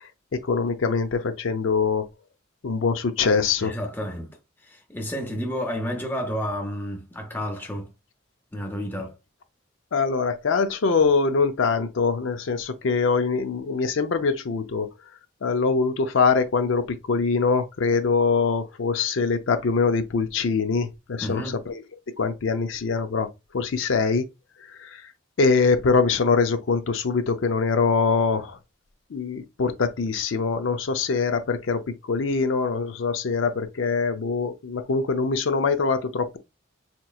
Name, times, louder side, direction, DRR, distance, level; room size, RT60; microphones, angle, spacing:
voice 1, 0.3-2.1 2.6-3.7 9.9-14.9 15.4-21.8 22.2-23.3 23.5-24.2 24.8-24.9 25.4-28.6 29.1-31.8 32.1-36.4, left 4 dB, 75° left, 0.5 m, -23 dB
voice 2, 3.6-4.4 4.6-7.9 8.5-9.1 21.2-21.6, equal, 10° left, 0.7 m, -31 dB
4.3 x 2.9 x 2.3 m
head